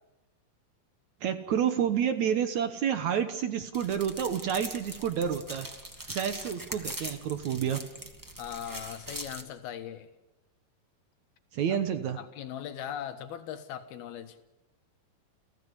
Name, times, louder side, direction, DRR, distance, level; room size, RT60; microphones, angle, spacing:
voice 1, 1.2-5.7 6.1-7.8 11.5-12.2, right 8 dB, 65° right, 9 dB, 2.1 m, -29 dB
sound 1, 3.7-9.4, right 1 dB, 15° right, 0.7 m, -42 dB
voice 2, 8.4-10.1 12.2-14.4, left 9 dB, 85° left, 8 dB, 3.4 m, -39 dB
29.5 x 15.5 x 8.2 m, 1.0 s
omnidirectional pair, 4.3 m